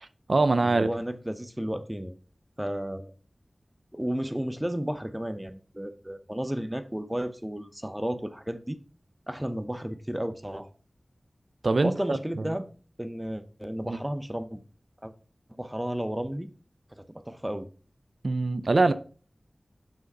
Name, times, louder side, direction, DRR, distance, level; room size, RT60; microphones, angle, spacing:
voice 1, 0.0-0.9 11.6-12.2 12.5-12.6 13.9-14.0 18.2-18.9, right 3 dB, 65° right, 0.5 m, -24 dB
voice 2, 0.6-2.1 2.6-3.1 3.9-8.8 9.3-10.7 11.8-12.7 13.0-14.6 15.0-15.1 15.6-16.5 17.0-17.7, equal, 10° right, 0.7 m, -33 dB
6.4 x 5.1 x 5.3 m
wide cardioid pair, 70°, 0 cm